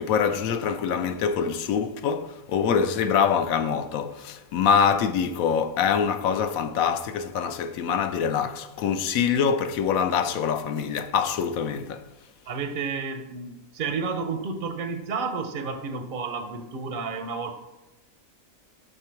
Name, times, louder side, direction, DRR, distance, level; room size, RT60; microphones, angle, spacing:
voice 1, 0.0-12.1, left 7 dB, 80° left, 1.0 m, -24 dB
voice 2, 12.5-17.5, right 4 dB, 60° right, 0.6 m, -31 dB
6.6 x 4.5 x 4.5 m
omnidirectional pair, 1.5 m